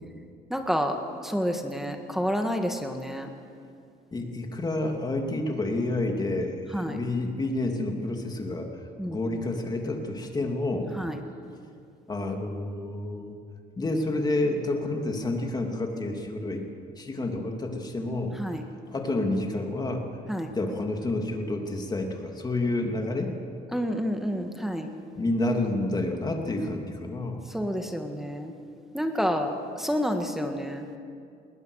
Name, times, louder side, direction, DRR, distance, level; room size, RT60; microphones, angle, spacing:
voice 1, 0.5-1.0 1.2-3.3 6.7-7.0 9.0-9.4 10.9-11.2 18.4-18.6 20.3-20.5 23.7-24.9 27.5-28.5 28.9-30.9, equal, ahead, 5 dB, 1.7 m, -29 dB
voice 2, 4.1-6.6 6.9-8.7 9.0-10.9 12.1-13.4 13.8-16.6 17.0-18.4 18.9-20.1 20.5-23.3 25.2-27.4, left 2 dB, 25° left, 3 dB, 2.8 m, -29 dB
20.0 x 20.0 x 6.5 m, 2.3 s
cardioid pair, 110°, 17 cm